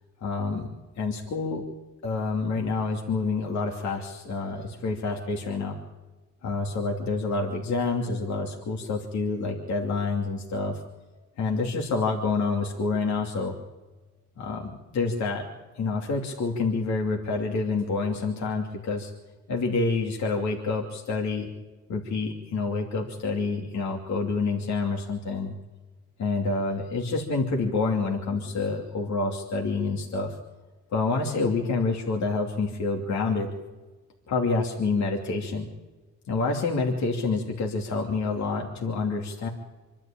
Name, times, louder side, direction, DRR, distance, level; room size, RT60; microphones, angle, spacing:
voice 1, 0.2-0.7 1.0-1.7 2.0-5.8 6.4-10.8 11.4-13.6 14.4-15.5 15.7-19.1 19.5-21.5 21.9-25.5 26.2-30.4 30.9-33.5 34.3-35.7 36.3-39.5, left 3 dB, 65° left, 0 dB, 2.8 m, -28 dB
25.5 x 12.0 x 8.7 m, 1.2 s
cardioid pair, 90°, 30 cm